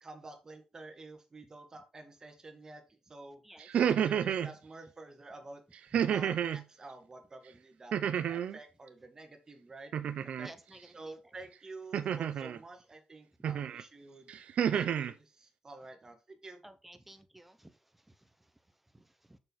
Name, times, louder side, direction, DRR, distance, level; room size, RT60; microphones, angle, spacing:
voice 1, 0.0-3.4 3.8-5.6 5.9-9.9 10.4-10.5 10.9-14.3 14.7-16.6, right 2 dB, 30° right, 1.8 m, -50 dB
sound 1, 3.6-4.5 5.9-6.6 7.9-8.6 9.9-10.5 11.9-12.6 13.4-13.8 14.3-15.1, right 9 dB, 90° right, 0.6 m, -30 dB
voice 2, 10.4-10.9 16.6-17.7 18.9-19.4, right 1 dB, 10° right, 1.0 m, -54 dB
6.8 x 6.4 x 4.1 m
wide cardioid pair, 125°, 2 cm